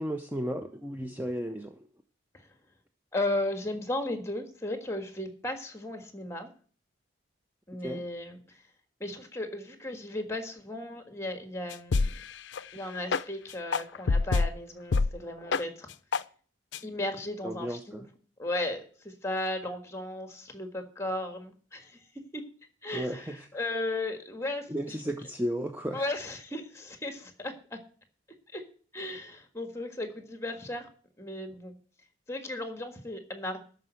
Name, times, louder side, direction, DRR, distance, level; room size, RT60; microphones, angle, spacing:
voice 1, 0.0-1.8 7.8-8.0 17.4-18.0 22.9-23.4 24.7-26.0, equal, 10° right, 5 dB, 0.6 m, -34 dB
voice 2, 3.1-6.5 7.7-8.4 9.0-12.1 12.7-15.9 16.8-18.1 18.4-22.4 22.8-25.0 25.9-27.8 28.5-28.6 28.9-30.9 31.2-31.7 32.3-33.6, left 1 dB, 15° left, 6 dB, 1.6 m, -35 dB
sound 1, 11.7-12.2 12.5-12.6 13.1-13.2 13.7-14.5 14.9-15.1 15.5-15.6 16.1-16.2 16.7-16.8, left 4 dB, 65° left, 0.5 m, -25 dB
12.5 x 5.2 x 7.8 m, 0.42 s
head